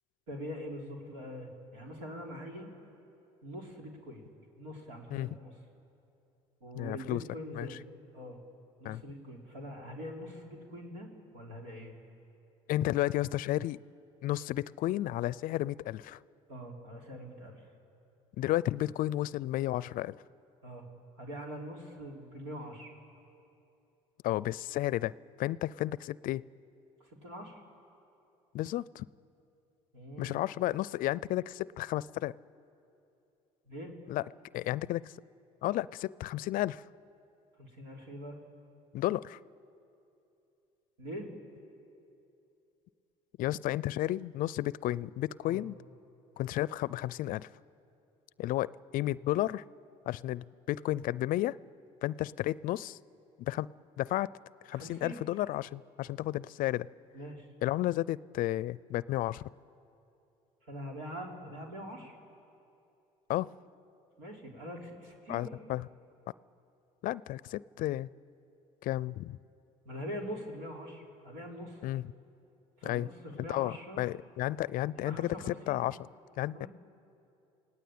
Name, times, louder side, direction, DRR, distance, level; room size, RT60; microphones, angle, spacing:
voice 1, 0.3-2.7 3.4-4.3 4.5-5.6 6.6-7.8 8.1-8.4 8.8-11.9 16.5-17.7 20.6-20.9 21.2-22.9 27.0-27.6 29.9-30.4 33.7-34.0 37.6-38.4 41.0-41.3 45.4-45.6 54.7-55.2 57.1-57.5 60.6-62.2 64.2-65.6 69.9-71.8 72.8-74.0 75.0-75.8 76.5-76.7, equal, 85° right, 0 dB, 3.8 m, -43 dB
voice 2, 6.7-7.2 7.6-7.7 8.8-9.0 12.7-13.8 14.2-16.2 18.4-20.2 24.2-25.1 25.4-26.4 28.5-29.1 30.2-32.3 34.1-34.2 34.5-35.1 35.6-36.8 38.9-39.4 43.4-45.8 46.4-47.5 48.4-49.6 50.1-51.6 52.0-53.0 53.4-53.7 54.0-54.3 54.7-56.9 57.6-59.4 63.3-63.5 65.3-65.9 67.0-68.1 68.8-69.4 71.8-72.0 72.8-73.1 73.5-76.0 76.4-76.7, left 15 dB, 60° left, 21 dB, 0.5 m, -32 dB
28.5 x 18.0 x 8.7 m, 2.8 s
hypercardioid pair, 70°, 16 cm